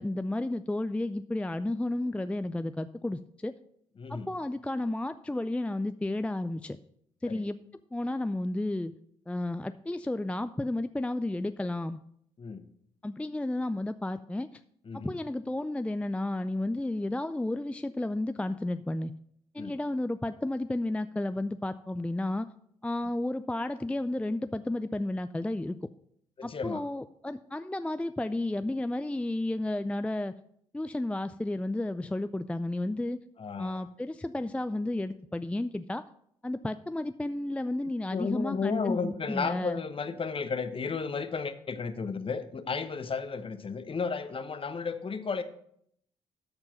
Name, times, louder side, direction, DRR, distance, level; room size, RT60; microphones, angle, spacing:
voice 1, 0.0-3.5 4.1-6.8 7.2-7.6 7.9-8.9 9.3-12.0 13.0-14.5 15.0-19.1 19.5-22.5 22.8-25.8 26.4-30.3 30.7-33.2 33.6-36.0 36.4-39.8, left 1 dB, 10° left, 11 dB, 0.4 m, -32 dB
voice 2, 4.0-4.3 7.3-7.4 12.4-12.7 14.9-15.2 19.6-19.8 26.4-26.8 33.4-33.8 38.1-45.4, left 5 dB, 35° left, 10 dB, 1.0 m, -33 dB
13.0 x 4.5 x 5.7 m, 0.70 s
hypercardioid pair, 50°, 15 cm